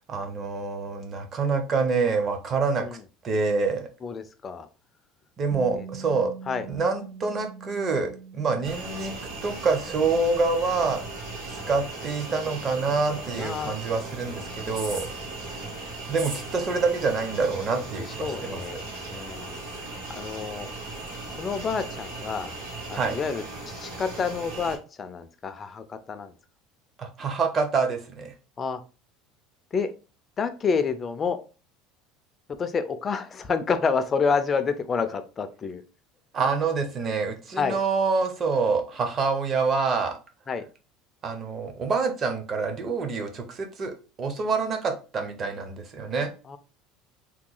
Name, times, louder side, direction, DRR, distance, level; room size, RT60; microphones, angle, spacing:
voice 1, 0.1-2.8 3.2-3.9 5.4-6.3 6.7-9.1 9.4-11.0 11.5-15.1 16.1-18.8 22.9-23.2 27.0-28.3 36.3-40.1 41.2-43.9 44.2-46.3, right 4 dB, 25° right, 6 dB, 0.6 m, -26 dB
voice 2, 4.0-4.7 5.7-5.9 6.5-6.7 13.3-13.7 18.0-18.8 19.1-20.7 21.4-22.5 22.9-26.3 28.6-28.8 29.7-29.9 30.4-31.4 32.6-35.8 37.6-37.8 40.5-40.7 46.5-46.6, left 5 dB, 20° left, 9 dB, 0.3 m, -29 dB
Bass guitar, 5.5-11.8, right 5 dB, 65° right, 1.4 m, -44 dB
sound 1, 8.6-24.8, right 2 dB, 85° right, 1.7 m, -37 dB
2.9 x 2.2 x 3.7 m, 0.34 s
cardioid pair, 160°, 0 cm